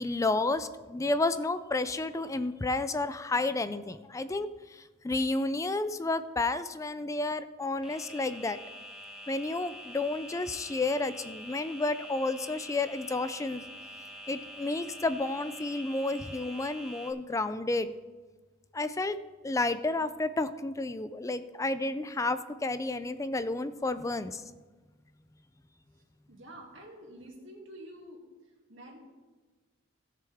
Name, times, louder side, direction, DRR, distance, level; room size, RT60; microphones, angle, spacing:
voice 1, 0.0-8.6 9.3-13.6 14.3-17.9 18.7-19.2 19.4-24.4, left 2 dB, 15° left, 13 dB, 0.4 m, -31 dB
sound 1, 7.8-17.1, equal, 5° right, 1.0 m, -46 dB
voice 2, 26.3-28.2 28.7-29.0, right 1 dB, 65° right, -1 dB, 2.4 m, -48 dB
16.5 x 6.7 x 3.6 m, 1.3 s
head